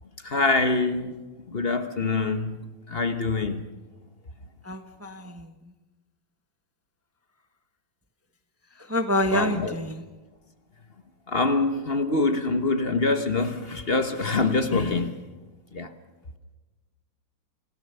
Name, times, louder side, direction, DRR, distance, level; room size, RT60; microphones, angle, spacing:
voice 1, 0.2-1.1 1.5-2.6 2.9-3.7 9.3-9.7 11.3-15.2 15.7-15.9, left 3 dB, 35° left, 1.1 m, -25 dB
voice 2, 4.6-5.5 8.9-10.0, left 1 dB, 10° right, 0.8 m, -27 dB
29.0 x 17.0 x 6.9 m
omnidirectional pair, 2.2 m